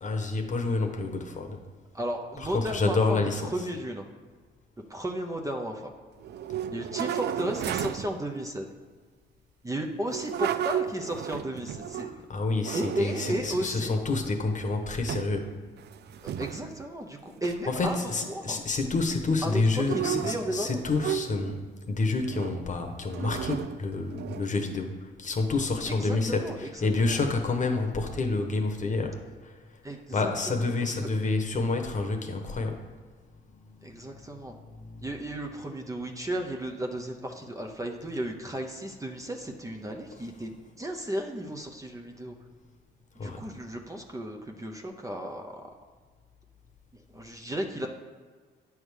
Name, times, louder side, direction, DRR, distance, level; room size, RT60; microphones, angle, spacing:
voice 1, 0.0-1.6 2.4-3.7 12.0-15.5 17.7-29.8 30.1-32.8 33.7-35.1 43.2-43.4, left 3 dB, 40° left, 3 dB, 1.1 m, -29 dB
voice 2, 1.9-4.0 4.9-5.9 6.7-8.6 9.6-12.1 12.7-13.9 16.2-18.6 19.4-19.6 19.9-20.8 25.9-27.2 29.8-31.1 33.8-34.5 35.0-42.3 43.1-45.5 46.9-47.9, right 1 dB, 15° right, 2 dB, 0.8 m, -34 dB
sound 1, 6.2-8.2 10.0-12.2 12.6-13.6 14.1-14.7 15.1-15.4 15.7-16.9 17.4-17.6 19.7-21.7 22.3-22.6 23.1-24.7, right 10 dB, 60° right, 0.4 m, -34 dB
8.9 x 3.5 x 6.4 m, 1.5 s
cardioid pair, 90°, 20 cm